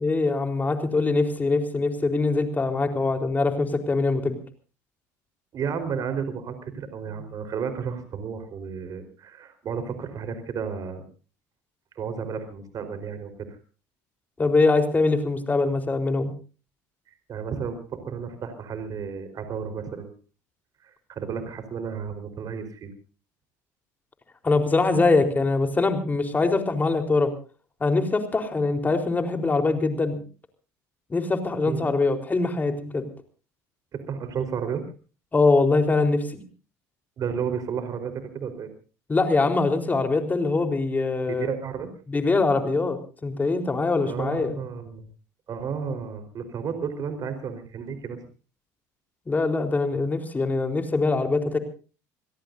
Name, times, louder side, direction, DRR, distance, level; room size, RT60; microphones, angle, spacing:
voice 1, 0.0-4.4 14.4-16.3 24.4-27.3 27.8-30.2 31.1-33.1 35.3-36.4 39.1-41.5 42.1-44.5 49.3-51.6, left 3 dB, 20° left, 6 dB, 4.1 m, -23 dB
voice 2, 5.5-11.0 12.0-13.3 17.3-20.1 20.8-22.9 31.6-31.9 33.9-34.8 37.2-38.7 41.3-41.9 44.0-45.1 45.5-48.2, right 6 dB, 45° right, 9 dB, 4.5 m, -32 dB
28.0 x 17.5 x 2.7 m, 0.36 s
supercardioid pair, 95°, 8 cm